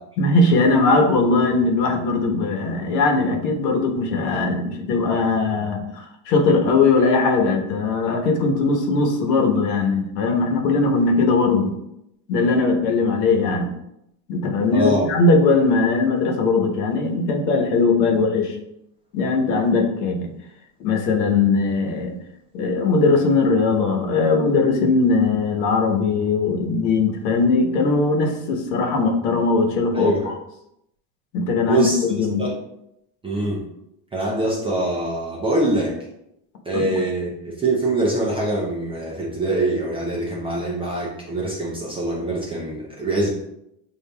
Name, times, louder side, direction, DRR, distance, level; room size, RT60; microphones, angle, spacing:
voice 1, 0.2-11.7 12.3-13.7 14.3-18.5 19.1-20.3 20.8-22.1 22.5-30.4 31.3-32.4 36.7-36.9, left 3 dB, 75° left, 3 dB, 1.1 m, -20 dB
voice 2, 14.7-15.0 29.9-30.3 31.7-32.0 32.4-32.6 33.2-33.6 34.1-35.9 36.7-43.3, right 2 dB, 10° right, -4 dB, 0.4 m, -23 dB
6.7 x 2.6 x 2.2 m, 0.81 s
supercardioid pair, 135°, 49 cm